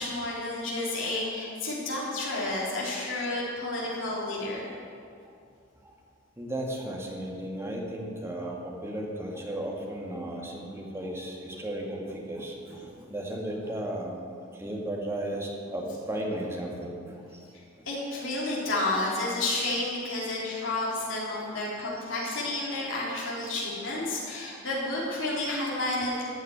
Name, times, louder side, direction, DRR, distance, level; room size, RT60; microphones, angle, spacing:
voice 1, 0.0-4.7 12.7-12.9 17.9-26.2, left 2 dB, 70° left, -5 dB, 3.6 m, -31 dB
voice 2, 6.4-14.2 14.5-17.5 20.2-20.3 22.2-22.4, right 1 dB, 15° right, -1 dB, 2.0 m, -35 dB
14.0 x 6.6 x 9.7 m, 2.4 s
head